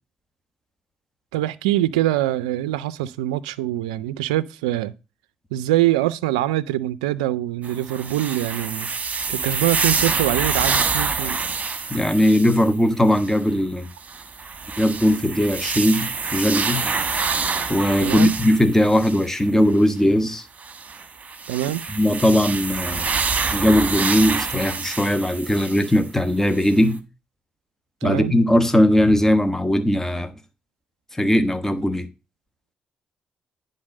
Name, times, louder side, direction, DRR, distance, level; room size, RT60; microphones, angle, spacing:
voice 1, 1.3-4.9 5.5-8.9 9.3-11.4 18.0-18.3 21.5-21.8 28.0-28.3, right 14 dB, 90° right, 0.4 m, -23 dB
sound 1, 7.6-12.7 13.1-13.3 14.0-19.4 20.6-26.0 26.5-26.6, right 5 dB, 40° right, 1.3 m, -26 dB
voice 2, 11.9-13.9 14.8-16.9 17.7-20.5 21.9-23.1 23.5-27.0 28.0-30.3 31.1-32.1, left 1 dB, 10° left, 1.2 m, -19 dB
10.0 x 3.9 x 6.4 m
hypercardioid pair, 50°, 4 cm